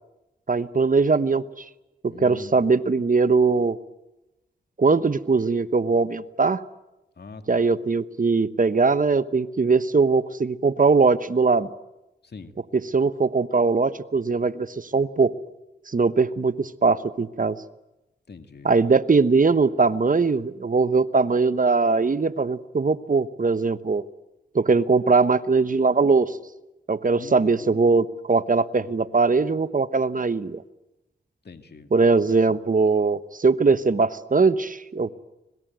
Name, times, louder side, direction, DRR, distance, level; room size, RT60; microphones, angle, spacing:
voice 1, 0.5-1.6 2.0-3.8 4.8-6.6 7.5-11.7 12.7-15.3 15.9-17.6 18.6-24.0 24.5-26.4 26.9-30.6 31.9-35.1, right 4 dB, 45° right, 13 dB, 1.1 m, -21 dB
voice 2, 2.1-2.6 7.2-7.7 12.2-12.6 18.3-18.7 27.2-28.0 31.4-31.9, left 4 dB, 60° left, 7 dB, 2.2 m, -43 dB
26.0 x 19.5 x 9.3 m, 0.99 s
cardioid pair, 40°, 19 cm